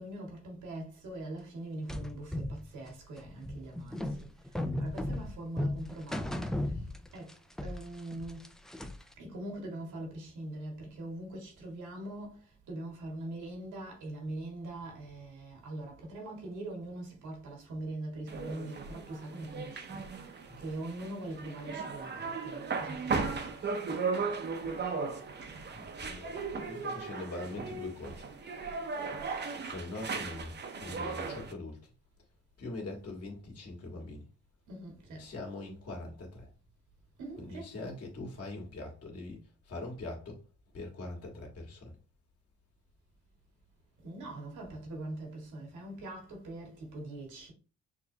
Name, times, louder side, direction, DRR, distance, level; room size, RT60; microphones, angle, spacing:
voice 1, 0.0-6.9 7.1-7.4 7.6-8.5 9.2-23.5 34.7-35.3 37.2-37.7 44.0-47.5, right 1 dB, 80° right, 1.9 m, -42 dB
sound 1, 1.9-7.3 7.6-9.1, left 1 dB, ahead, 0.4 m, -36 dB
sound 2, 18.3-31.5, right 4 dB, 35° right, 0.7 m, -37 dB
voice 2, 25.7-28.3 29.6-30.5 30.8-31.9 32.6-34.2 35.1-36.5 37.4-40.4 40.7-42.0, left 2 dB, 50° left, 1.8 m, -42 dB
5.9 x 2.5 x 2.8 m
cardioid pair, 90°, 30 cm